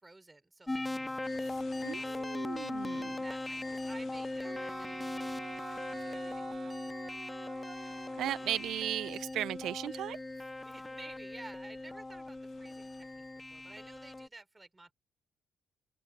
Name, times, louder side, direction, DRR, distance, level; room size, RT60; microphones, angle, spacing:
voice 1, 0.0-1.7 2.0-2.9 3.2-7.3 10.6-14.9, right 2 dB, 15° right, 5.9 m, -54 dB
sound 1, 0.7-14.3, left 2 dB, 15° left, 0.4 m, -39 dB
sound 2, 1.2-14.3, left 7 dB, 55° left, 3.5 m, -60 dB
voice 2, 1.8-3.2 8.2-10.2, right 12 dB, 80° right, 0.5 m, -36 dB
Wind instrument woodwind instrument, 4.4-8.7, right 6 dB, 45° right, 0.7 m, -48 dB
open air
cardioid pair, 90°, 0 cm